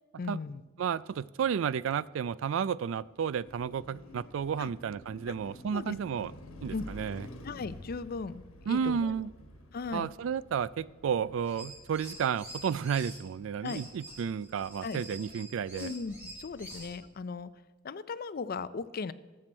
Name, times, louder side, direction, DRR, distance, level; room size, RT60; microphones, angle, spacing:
voice 1, 0.2-0.6 4.6-4.7 5.3-5.4 5.7-5.9 6.7-6.9 7.4-9.2 9.7-10.1 13.6-13.8 14.8-15.0 15.7-17.5 17.8-19.1, left 4 dB, 45° left, 15 dB, 0.4 m, -37 dB
voice 2, 0.8-6.3 6.6-7.3 8.7-9.3 9.9-15.9, right 7 dB, 65° right, 19 dB, 0.3 m, -32 dB
Car passing by, 3.0-15.2, left 1 dB, 90° left, 1.3 m, -50 dB
sound 1, 11.4-13.2 13.6-17.0, right 1 dB, 10° right, 4.9 m, -47 dB
18.5 x 7.7 x 4.4 m, 1.3 s
head